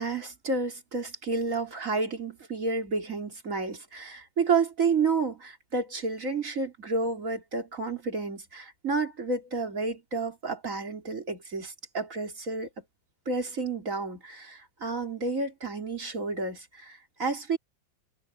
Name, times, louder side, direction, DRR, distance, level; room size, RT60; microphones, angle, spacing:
voice 1, 0.0-12.8 13.3-17.6, right 4 dB, 40° right, 3.7 m, -30 dB
omnidirectional pair, 2.2 m